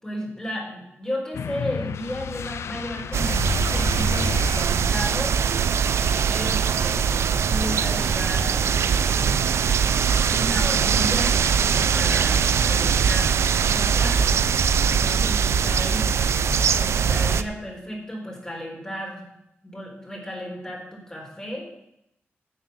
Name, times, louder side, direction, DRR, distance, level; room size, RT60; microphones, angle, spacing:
voice 1, 0.0-5.4 6.0-9.3 10.3-13.3 13.7-14.3 14.8-16.1 16.7-19.2 19.6-21.7, equal, 15° left, -2 dB, 4.2 m, -34 dB
sound 1, 1.3-5.2, left 7 dB, 90° left, 0.5 m, -32 dB
sound 2, 3.1-17.4, right 7 dB, 85° right, 0.6 m, -21 dB
sound 3, 11.1-17.0, left 4 dB, 40° left, 0.7 m, -42 dB
10.5 x 7.6 x 8.5 m, 0.81 s
wide cardioid pair, 130°, 5 cm